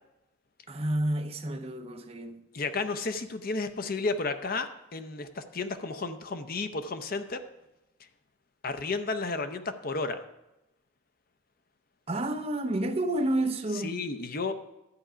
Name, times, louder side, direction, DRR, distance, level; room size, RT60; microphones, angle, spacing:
voice 1, 0.7-2.5 12.1-14.0, right 1 dB, 30° right, 0.7 m, -30 dB
voice 2, 2.5-7.4 8.6-10.2 13.8-14.5, left 3 dB, 45° left, 0.6 m, -32 dB
11.5 x 8.4 x 5.0 m
head